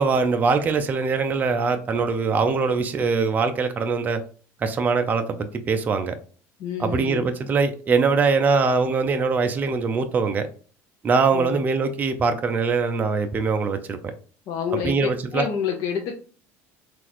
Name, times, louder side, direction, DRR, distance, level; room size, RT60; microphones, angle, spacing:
voice 1, 0.0-4.2 4.6-6.2 6.8-10.5 11.0-14.0 14.7-15.4, right 4 dB, 25° right, 7 dB, 0.4 m, -22 dB
voice 2, 6.6-7.3 11.3-11.6 14.5-14.9 15.3-16.2, left 7 dB, 55° left, 2 dB, 0.6 m, -28 dB
3.9 x 2.5 x 2.9 m, 0.40 s
cardioid pair, 130°, 7 cm